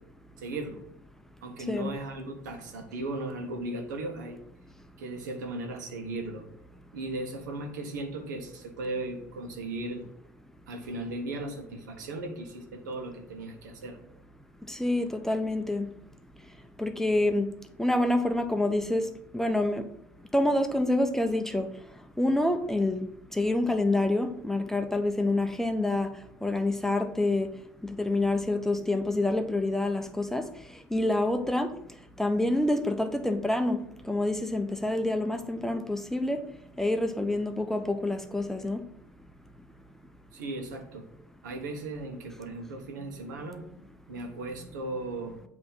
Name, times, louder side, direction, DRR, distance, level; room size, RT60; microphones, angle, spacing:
voice 1, 0.4-0.8 1.4-4.4 5.0-6.4 6.9-10.1 10.7-14.0 40.3-41.1 41.4-45.5, right 2 dB, 80° right, 3 dB, 1.1 m, -37 dB
voice 2, 14.7-15.9 16.8-17.5 17.8-19.0 19.3-19.8 20.3-21.7 22.2-23.1 23.3-26.1 26.4-27.5 28.0-30.5 30.9-31.7 32.2-33.8 34.1-36.4 36.8-38.8, left 2 dB, 5° left, 7 dB, 0.7 m, -27 dB
7.7 x 3.0 x 5.4 m, 0.75 s
hypercardioid pair, 70°, 10 cm